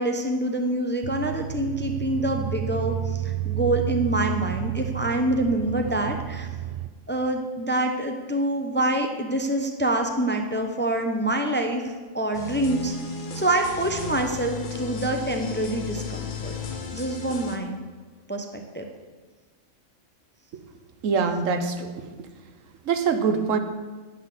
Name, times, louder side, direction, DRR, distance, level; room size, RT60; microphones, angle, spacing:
voice 1, 0.0-6.5 7.1-12.9 13.3-16.5 16.9-17.8 18.3-18.9, right 1 dB, 10° left, 4 dB, 0.6 m, -26 dB
sound 1, 1.0-6.9, right 11 dB, 70° right, 0.9 m, -31 dB
sound 2, 12.3-17.6, left 4 dB, 45° left, 1.0 m, -35 dB
voice 2, 21.0-21.9 22.9-23.6, right 5 dB, 90° right, 8 dB, 1.2 m, -23 dB
9.9 x 6.0 x 7.7 m, 1.4 s
omnidirectional pair, 1.3 m